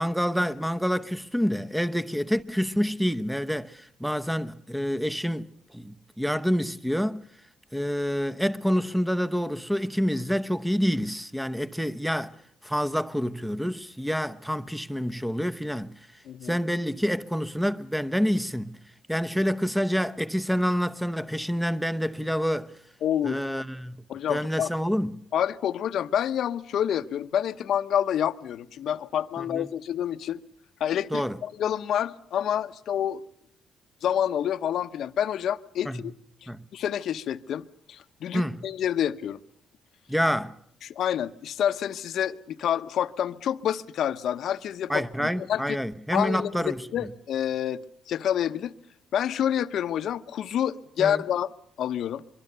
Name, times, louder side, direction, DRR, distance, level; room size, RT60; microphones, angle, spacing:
voice 1, 0.0-5.5 5.7-7.2 7.7-12.3 12.6-15.9 16.4-18.8 19.1-22.7 23.2-24.0 24.3-25.2 29.4-29.7 31.1-31.4 35.8-36.0 36.5-36.6 38.3-38.6 40.1-40.6 44.9-47.1 51.0-51.2, equal, ahead, 0.9 m, -27 dB
voice 2, 16.3-16.6 23.0-23.4 24.1-24.7 25.3-30.4 30.8-33.2 34.0-36.1 36.7-39.4 40.8-45.8 46.1-47.8 48.1-48.7 49.1-51.5 51.8-52.2, left 10 dB, 70° left, 0.9 m, -28 dB
23.5 x 23.5 x 6.8 m
cardioid pair, 90°, 0 cm